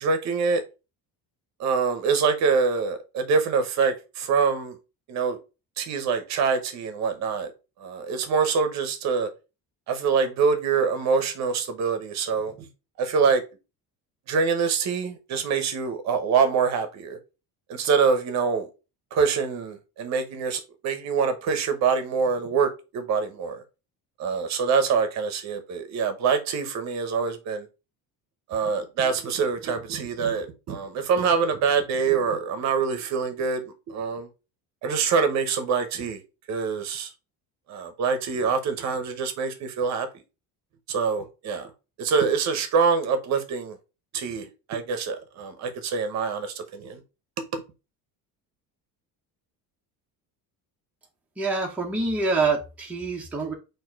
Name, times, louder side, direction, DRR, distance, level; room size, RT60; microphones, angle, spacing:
voice 1, 0.0-0.6 1.6-4.8 5.1-5.4 5.8-7.5 7.8-9.3 9.9-12.7 13.0-13.4 14.3-17.2 17.7-18.7 19.1-23.6 24.2-27.7 28.5-34.3 34.8-36.2 36.5-37.1 37.7-40.1 40.9-41.7 42.0-43.8 44.1-47.0 47.5-47.6, right 5 dB, 45° right, 0.8 m, -25 dB
voice 2, 51.4-53.5, right 3 dB, 5° right, 0.7 m, -26 dB
4.2 x 2.6 x 4.3 m
cardioid pair, 175°, 37 cm